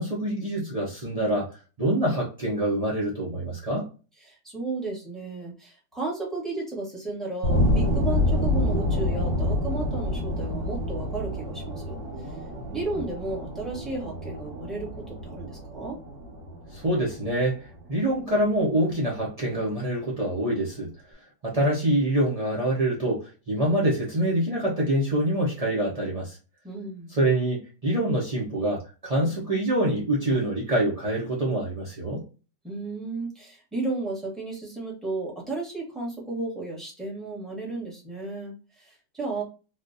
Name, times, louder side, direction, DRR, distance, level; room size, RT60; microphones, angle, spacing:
voice 1, 0.0-1.5 1.8-3.8 16.7-20.9 21.4-26.4 27.1-32.2, right 1 dB, 55° right, -5 dB, 0.4 m, -25 dB
voice 2, 4.2-12.0 12.3-12.4 12.7-16.0 26.6-27.1 32.6-39.4, right 3 dB, ahead, -4 dB, 0.9 m, -33 dB
sound 1, 7.4-18.2, left 1 dB, 85° right, 1.8 m, -28 dB
3.5 x 2.5 x 2.5 m, 0.33 s
omnidirectional pair, 2.0 m